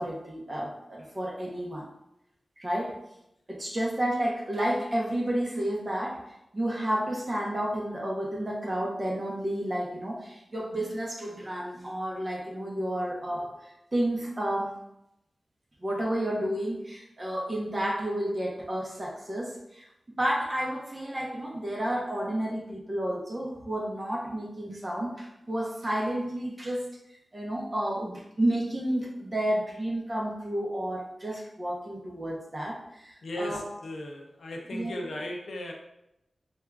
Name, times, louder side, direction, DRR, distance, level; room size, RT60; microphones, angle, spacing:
voice 1, 0.0-1.9 2.6-3.0 3.5-6.2 6.5-13.6 13.9-14.8 15.8-19.8 20.2-26.9 27.3-33.7 34.7-34.9, right 1 dB, 35° right, -2 dB, 0.8 m, -31 dB
voice 2, 33.2-35.7, left 1 dB, 85° left, 1 dB, 0.5 m, -36 dB
4.5 x 2.4 x 2.3 m, 0.84 s
wide cardioid pair, 75°, 0 cm